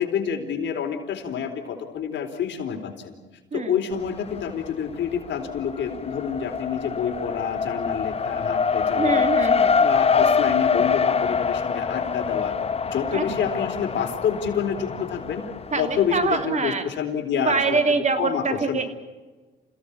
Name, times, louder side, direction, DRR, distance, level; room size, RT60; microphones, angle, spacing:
voice 1, 0.0-3.1 3.5-9.3 9.8-12.6 12.8-15.4 15.8-17.8 18.2-18.9, left 7 dB, 65° left, 4 dB, 4.1 m, -28 dB
Race car auto racing, 3.9-4.7 5.0-16.3, left 5 dB, 30° left, 0.8 m, -25 dB
voice 2, 8.9-9.7 13.1-13.4 15.7-16.8 17.4-18.9, right 4 dB, 35° right, 7 dB, 3.1 m, -24 dB
29.0 x 16.5 x 8.8 m, 1.3 s
cardioid pair, 90°, 20 cm